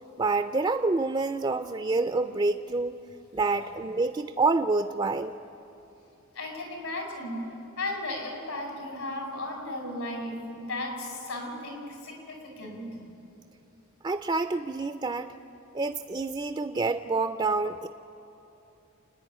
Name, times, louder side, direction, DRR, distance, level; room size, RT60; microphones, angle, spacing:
voice 1, 0.2-3.0 3.3-5.3 14.0-15.3 15.7-17.9, right 3 dB, 20° right, 9 dB, 0.4 m, -27 dB
voice 2, 6.4-7.5 7.8-13.0, left 1 dB, 85° left, 2 dB, 5.2 m, -35 dB
29.5 x 10.0 x 9.4 m, 2.8 s
head